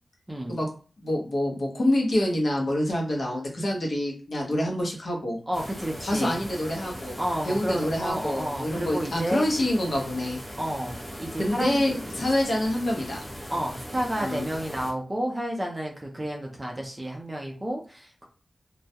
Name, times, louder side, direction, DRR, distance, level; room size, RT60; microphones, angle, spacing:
voice 1, 1.0-5.4 6.0-7.2 7.4-10.4 11.4-13.2 14.2-14.4, left 1 dB, 55° left, -1 dB, 0.7 m, -26 dB
sound 1, 5.5-14.9, equal, 20° left, 0.9 m, -39 dB
voice 2, 5.5-6.4 7.2-9.5 10.6-11.8 13.5-18.3, right 1 dB, 20° right, 0 dB, 0.5 m, -31 dB
2.3 x 2.1 x 2.7 m, 0.38 s
wide cardioid pair, 110°, 0 cm